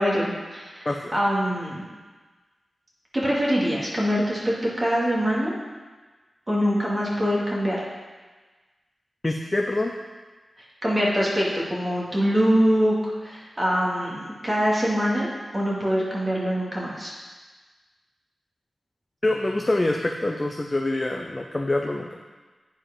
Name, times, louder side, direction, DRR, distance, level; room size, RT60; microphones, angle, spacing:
voice 1, 0.0-1.8 3.1-5.5 6.5-7.8 10.8-13.0 13.2-17.1, equal, 30° right, -5 dB, 2.4 m, -24 dB
voice 2, 9.2-9.9 19.2-22.2, left 2 dB, 30° left, 2 dB, 0.6 m, -25 dB
8.7 x 4.9 x 5.3 m, 1.3 s
cardioid pair, 65°, 0 cm